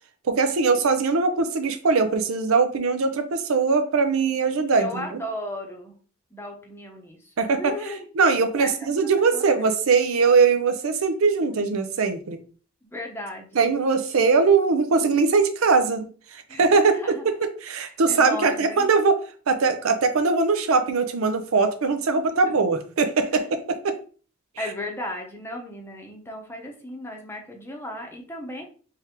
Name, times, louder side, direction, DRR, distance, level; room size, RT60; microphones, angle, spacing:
voice 1, 0.3-5.2 7.4-12.4 13.5-17.3 17.6-19.2 19.5-24.0 24.6-24.7, right 4 dB, 80° right, 9 dB, 0.5 m, -21 dB
voice 2, 4.8-5.9 6.3-8.1 8.6-9.5 11.5-11.8 12.8-13.7 16.5-17.2 17.8-18.9 22.4-22.5 23.3-23.4 24.6-28.6, left 1 dB, 10° left, 2 dB, 0.7 m, -36 dB
3.5 x 3.2 x 2.9 m, 0.40 s
head